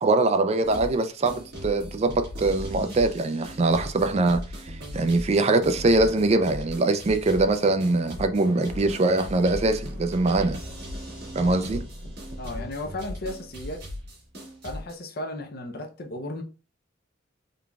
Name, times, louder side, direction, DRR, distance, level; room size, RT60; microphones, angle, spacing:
voice 1, 0.0-4.4 4.9-10.6 11.4-11.8, right 2 dB, 35° right, 0.4 m, -22 dB
sound 1, 0.6-1.0 1.3-14.9, left 1 dB, 55° right, 1.7 m, -38 dB
voice 2, 12.4-13.8 14.6-16.4, left 1 dB, 50° left, 0.7 m, -35 dB
3.8 x 3.5 x 2.3 m
head